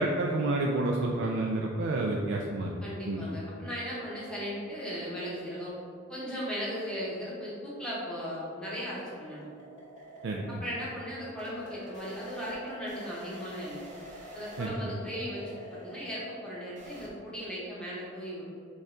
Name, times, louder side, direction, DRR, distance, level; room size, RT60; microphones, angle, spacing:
voice 1, 0.0-2.7 3.1-3.3 10.2-10.6 14.6-14.9, right 2 dB, 65° right, -1 dB, 0.3 m, -29 dB
voice 2, 2.8-5.7 6.1-9.4 10.5-13.9 14.3-18.5, equal, 5° left, -8 dB, 0.9 m, -37 dB
sound 1, 8.1-17.1, right 1 dB, 35° right, 0.7 m, -48 dB
5.2 x 2.3 x 3.6 m, 2.4 s
head